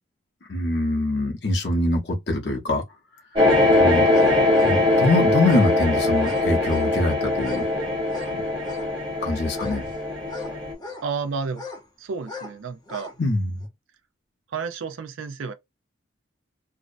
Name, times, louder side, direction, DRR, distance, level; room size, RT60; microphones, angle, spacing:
voice 1, 0.5-2.8 3.8-4.1 4.6-7.6 8.3-8.4 9.2-9.8 13.2-13.6, left 2 dB, 55° left, 0.7 m, -23 dB
sound 1, 3.4-10.7, left 2 dB, 25° right, 1.0 m, -21 dB
sound 2, 3.5-3.6 4.1-4.8 5.4-5.7 6.2-7.0 7.3-7.7 8.0-8.9 9.5-11.1 11.5-11.8 12.2-12.6 12.8-13.2 13.6-13.7, left 3 dB, 20° left, 0.5 m, -38 dB
voice 2, 11.0-11.6 12.0-13.1 14.5-15.5, right 5 dB, 80° right, 0.4 m, -31 dB
2.6 x 2.1 x 2.4 m
head